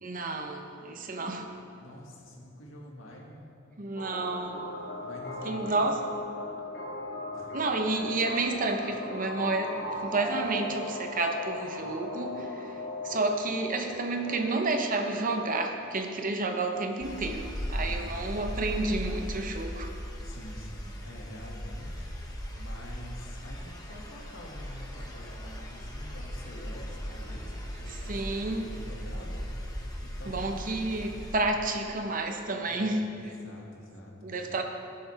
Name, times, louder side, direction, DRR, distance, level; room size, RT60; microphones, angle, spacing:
voice 1, 0.0-1.5 3.8-4.6 5.4-6.1 7.5-19.9 27.9-28.7 30.3-33.1 34.2-34.6, right 2 dB, 40° right, 4 dB, 0.8 m, -30 dB
voice 2, 1.7-3.5 5.0-6.0 7.3-7.5 17.8-18.4 20.2-29.5 30.0-30.6 32.6-34.1, equal, 75° left, -2 dB, 2.0 m, -47 dB
sound 1, 4.0-14.6, left 2 dB, 50° left, 1.8 m, -38 dB
sound 2, 17.0-31.3, equal, 20° left, 1.2 m, -38 dB
17.5 x 7.9 x 3.5 m, 2.5 s
head